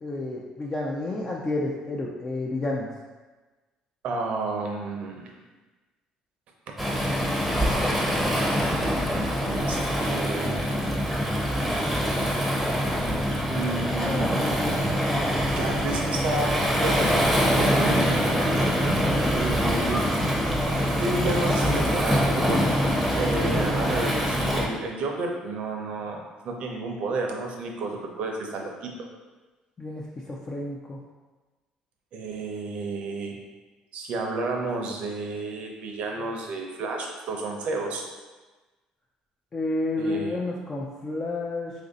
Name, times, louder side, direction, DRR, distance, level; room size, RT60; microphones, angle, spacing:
voice 1, 0.0-2.9 13.6-13.8 14.1-14.8 15.0-15.6 29.8-31.0 39.5-41.7, left 2 dB, 30° left, -3 dB, 0.4 m, -31 dB
voice 2, 4.0-5.4 7.9-9.1 9.4-10.6 13.5-14.6 15.5-18.1 19.3-20.2 21.0-22.6 23.1-29.1 32.1-33.3 33.9-38.0 40.0-40.4, right 3 dB, 65° right, 1 dB, 0.6 m, -31 dB
Waves surf, 6.8-24.7, equal, 5° right, 0.7 m, -24 dB
3.0 x 2.6 x 3.9 m, 1.2 s
cardioid pair, 105°, 2 cm